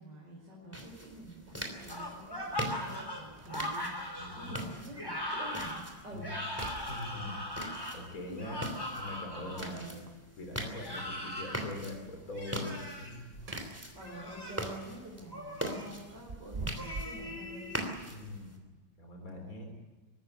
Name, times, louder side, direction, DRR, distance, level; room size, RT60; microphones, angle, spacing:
voice 1, 0.0-6.6 8.3-8.4 9.4-10.0 13.9-17.7, right 1 dB, 65° right, -4 dB, 5.9 m, -48 dB
sound 1, 0.6-0.8 2.5-2.6 3.0-3.1 3.4-3.9 4.5-4.6 5.1-5.2 5.6-6.0 6.4-7.5 9.6-10.3 13.0-14.1 14.5-14.7 16.0-17.3, right 4 dB, 45° right, 0.4 m, -45 dB
sound 2, 0.7-18.6, right 1 dB, 5° right, 3.0 m, -43 dB
sound 3, 1.9-9.7 10.7-11.7 12.3-13.1 13.9-14.7 15.3-15.9 16.8-17.9, left 1 dB, 10° left, 4.4 m, -40 dB
voice 2, 4.2-4.6 6.1-6.2 6.9-7.4 7.9-8.6 9.0-9.9 10.3-13.4 18.1-18.6 19.0-19.7, left 2 dB, 45° left, 3 dB, 4.0 m, -42 dB
24.0 x 13.5 x 9.9 m, 1.2 s
omnidirectional pair, 2.1 m